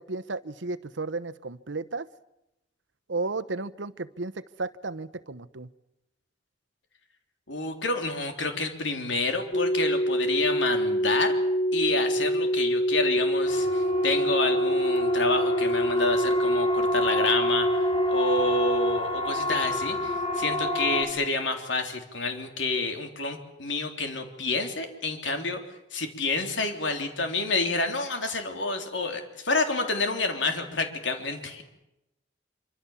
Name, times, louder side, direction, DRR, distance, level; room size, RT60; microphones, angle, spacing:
voice 1, 0.0-2.1 3.1-5.7, right 3 dB, 90° right, 12 dB, 1.0 m, -33 dB
voice 2, 7.5-11.3 11.7-17.7 18.1-25.6 25.9-31.6, left 3 dB, 90° left, 5 dB, 3.5 m, -29 dB
sound 1, 9.5-19.0, equal, 50° left, 1.1 m, -25 dB
Siren, 13.5-21.0, left 1 dB, 30° left, 3.6 m, -30 dB
26.0 x 25.0 x 7.3 m, 0.91 s
head